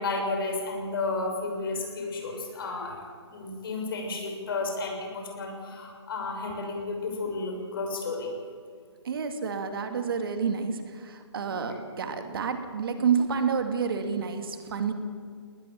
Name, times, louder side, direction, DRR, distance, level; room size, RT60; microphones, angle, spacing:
voice 1, 0.0-8.3 11.4-11.7, left 3 dB, 55° left, 2 dB, 6.5 m, -32 dB
voice 2, 9.0-14.9, right 6 dB, 55° right, 7 dB, 2.4 m, -29 dB
20.5 x 19.5 x 7.5 m, 2.1 s
figure-of-eight pair, 140°, 14 cm